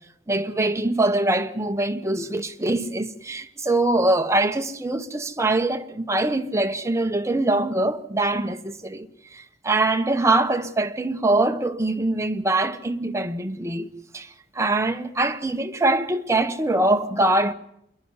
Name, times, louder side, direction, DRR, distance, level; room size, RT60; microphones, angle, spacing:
voice 1, 0.3-9.1 9.3-14.3 14.5-17.5, right 2 dB, 15° right, 0.9 m, -23 dB
27.0 x 11.0 x 9.5 m
head